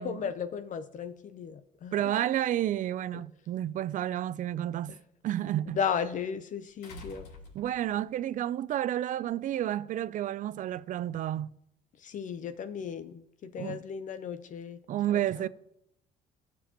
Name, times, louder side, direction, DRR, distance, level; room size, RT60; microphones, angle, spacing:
voice 1, 0.0-2.0 3.1-3.2 5.7-7.3 12.0-14.8 15.1-15.5, left 7 dB, 50° left, 0.6 m, -35 dB
voice 2, 1.9-4.9 5.2-5.8 7.5-11.5 13.6-13.8 14.9-15.5, right 12 dB, 50° right, 0.4 m, -31 dB
sound 1, 3.5-3.6 6.8-8.1 9.5-9.6, left 2 dB, 85° left, 2.9 m, -48 dB
14.0 x 7.0 x 2.9 m
cardioid pair, 110°, 17 cm